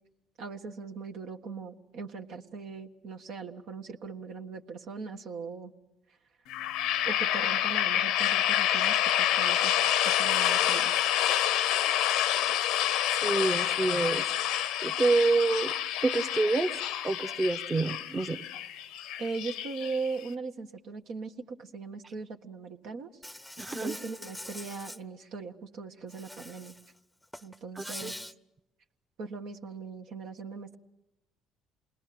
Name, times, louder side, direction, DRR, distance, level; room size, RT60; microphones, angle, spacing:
voice 1, 0.4-5.7 7.0-10.9 19.2-23.2 23.8-26.8 27.4-28.3 29.2-30.8, right 4 dB, 65° right, 3 dB, 1.4 m, -39 dB
sound 1, 6.5-20.3, left 11 dB, 70° left, 0.8 m, -28 dB
voice 2, 13.2-14.2 14.8-15.7 16.0-16.7 17.0-18.4 23.6-23.9 27.8-28.1, right 3 dB, 30° right, 7 dB, 1.3 m, -27 dB
Insect, 23.2-25.0 26.1-26.9 27.2-28.3, left 1 dB, 5° left, 0.8 m, -43 dB
28.0 x 21.0 x 7.7 m, 0.93 s
hypercardioid pair, 60°, 0 cm